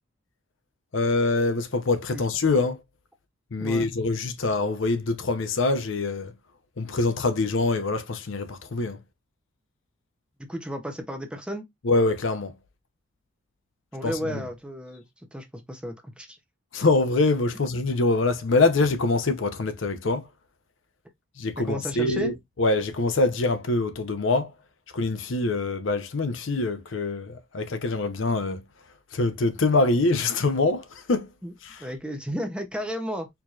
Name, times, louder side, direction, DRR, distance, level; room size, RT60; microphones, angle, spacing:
voice 1, 0.9-2.8 3.5-6.3 6.8-9.0 11.8-12.5 14.0-14.4 16.7-20.3 21.4-22.3 22.6-24.5 24.9-28.6 29.1-31.3 31.6-31.8, left 3 dB, 70° left, 0.6 m, -24 dB
voice 2, 3.6-3.9 10.5-11.6 13.9-15.0 15.3-16.4 21.6-22.3 31.4-31.5 31.8-33.3, equal, 5° right, 0.6 m, -33 dB
4.6 x 2.7 x 2.4 m
head